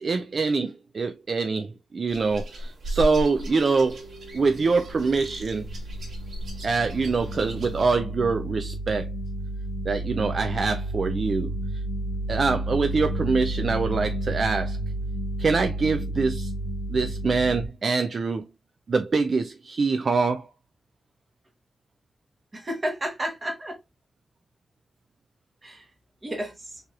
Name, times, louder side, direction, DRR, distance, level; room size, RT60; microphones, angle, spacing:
voice 1, 0.0-4.0 4.3-5.7 6.6-9.1 9.8-11.8 12.3-14.8 15.4-16.5 16.9-18.5 18.9-20.5, right 4 dB, 40° right, 0.3 m, -25 dB
sound 1, 2.1-7.8, equal, 65° right, 1.6 m, -36 dB
sound 2, 3.8-17.7, right 1 dB, 65° left, 0.8 m, -32 dB
voice 2, 22.5-23.8 25.6-25.9 26.2-26.8, right 1 dB, 25° right, 1.2 m, -32 dB
4.8 x 2.9 x 2.3 m
wide cardioid pair, 165°, 0 cm